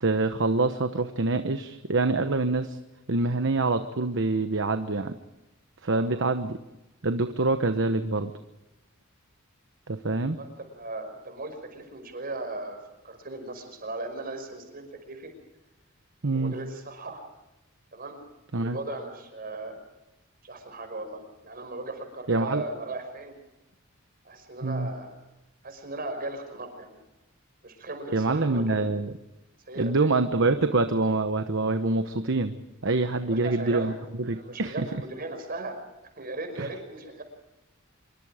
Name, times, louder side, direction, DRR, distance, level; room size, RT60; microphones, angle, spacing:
voice 1, 0.0-2.8 3.1-5.1 5.8-6.6 7.0-8.3 9.9-10.4 16.2-16.6 18.5-18.8 22.3-22.6 24.6-24.9 28.1-29.1 29.8-32.5 32.8-33.9 34.2-35.0 36.6-36.7, right 3 dB, 60° right, 9 dB, 1.1 m, -25 dB
voice 2, 5.9-6.3 10.3-12.8 13.0-15.3 16.3-17.2 17.9-18.2 18.6-19.8 20.4-23.4 24.2-25.2 25.6-27.0 27.6-29.0 29.7-30.1 33.2-33.9 34.3-35.8 36.2-37.2, right 2 dB, 45° right, 6 dB, 5.6 m, -37 dB
25.5 x 23.5 x 5.0 m, 0.98 s
head